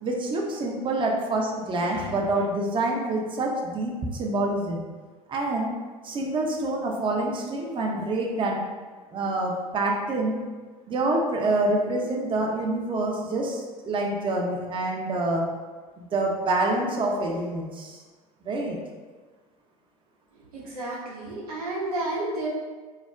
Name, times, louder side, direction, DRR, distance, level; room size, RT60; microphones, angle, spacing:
voice 1, 0.0-4.8 5.3-5.7 6.0-8.6 9.1-10.4 10.9-15.5 16.0-18.0 18.5-18.8, right 2 dB, 25° right, 0 dB, 0.5 m, -26 dB
voice 2, 20.5-22.5, right 2 dB, 80° right, -5 dB, 0.8 m, -31 dB
2.2 x 2.0 x 3.5 m, 1.4 s
hypercardioid pair, 75°, 19 cm